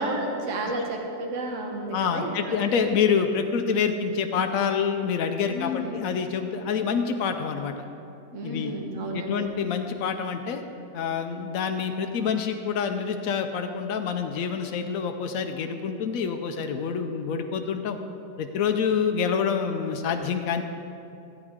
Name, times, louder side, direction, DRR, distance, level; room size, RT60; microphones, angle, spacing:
voice 1, 0.0-3.0 5.5-6.1 8.3-9.5, right 1 dB, 45° right, 1 dB, 1.3 m, -32 dB
voice 2, 1.9-7.8 8.4-8.7 9.1-10.6 10.9-18.0 18.4-20.6, left 6 dB, 85° left, 6 dB, 0.7 m, -27 dB
14.5 x 8.8 x 3.6 m, 2.7 s
omnidirectional pair, 2.1 m